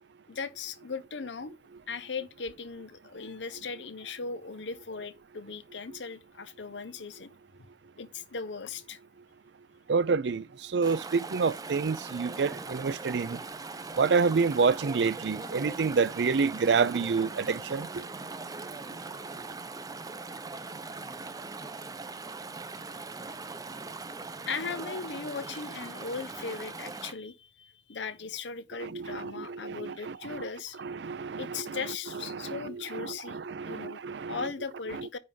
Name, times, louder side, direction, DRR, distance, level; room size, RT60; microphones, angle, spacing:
voice 1, 0.3-1.5 1.9-7.3 8.0-9.0 24.5-30.8 31.4-33.4 33.6-34.0 34.3-35.2, left 5 dB, 85° left, 0.8 m, -38 dB
voice 2, 9.9-10.4 10.7-13.4 14.0-18.0 28.8-30.5 30.8-31.8 32.3-34.5 34.9-35.2, right 5 dB, 70° right, 0.5 m, -28 dB
Chatter / Stream, 10.8-27.1, right 3 dB, 20° right, 0.6 m, -40 dB
9.6 x 3.5 x 5.3 m
head